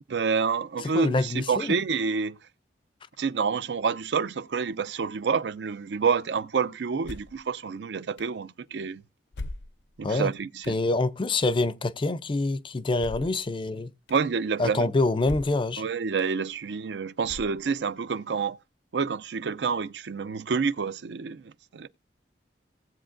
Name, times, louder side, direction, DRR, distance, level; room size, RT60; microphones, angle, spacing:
voice 1, 0.1-2.4 3.2-9.0 10.0-10.8 14.1-14.9 15.8-18.6 18.9-21.9, right 5 dB, 70° right, 0.5 m, -28 dB
voice 2, 0.9-1.8 10.0-10.3 10.7-13.9 14.6-15.8, left 2 dB, 30° left, 0.4 m, -26 dB
sound 1, 7.0-7.4 8.2-8.3 9.3-10.0 10.6-10.8 13.0-13.4 14.1-14.2 15.2-15.7 16.2-16.3 17.2-17.8, left 2 dB, 90° left, 0.6 m, -39 dB
18.0 x 7.7 x 2.5 m
head